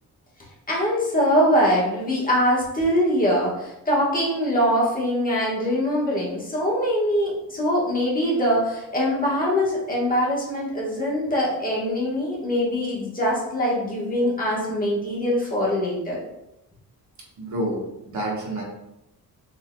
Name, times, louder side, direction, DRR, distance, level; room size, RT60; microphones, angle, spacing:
voice 1, 0.7-16.2, equal, 20° left, -5 dB, 1.3 m, -23 dB
voice 2, 17.4-18.6, right 1 dB, 50° right, -2 dB, 1.2 m, -28 dB
6.2 x 3.7 x 2.2 m, 0.87 s
wide cardioid pair, 170°, 38 cm